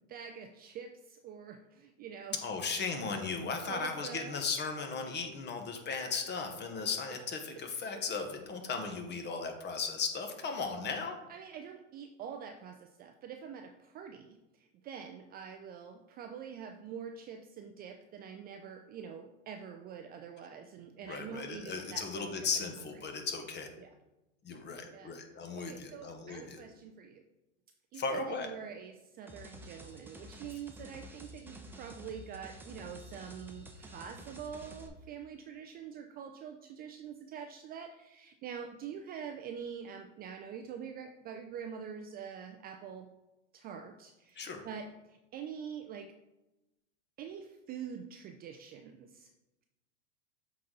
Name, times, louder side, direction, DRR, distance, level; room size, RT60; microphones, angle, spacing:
voice 1, 0.1-2.4 3.7-4.4 11.3-22.3 23.8-23.9 24.9-25.1 25.6-27.2 27.9-43.1 43.5-46.1 47.2-49.3, right 7 dB, 25° right, 5 dB, 0.4 m, -45 dB
voice 2, 2.4-11.2 21.1-23.7 24.4-26.6 27.9-28.5 44.4-44.6, left 4 dB, 30° left, 5 dB, 1.2 m, -36 dB
sound 1, 29.3-34.9, equal, 5° right, 0.7 m, -50 dB
7.5 x 4.1 x 3.8 m, 0.99 s
hypercardioid pair, 110°, 37 cm